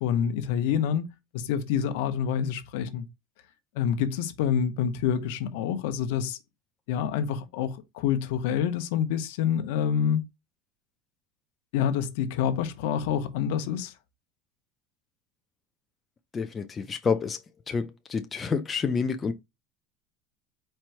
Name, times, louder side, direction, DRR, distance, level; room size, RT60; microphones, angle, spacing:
voice 1, 0.0-3.1 3.7-6.4 6.9-10.2 11.7-13.9, left 8 dB, 65° left, 0.7 m, -27 dB
voice 2, 16.3-17.4 17.7-19.3, left 5 dB, 15° left, 0.4 m, -28 dB
4.4 x 2.6 x 4.5 m
cardioid pair, 180°, 0 cm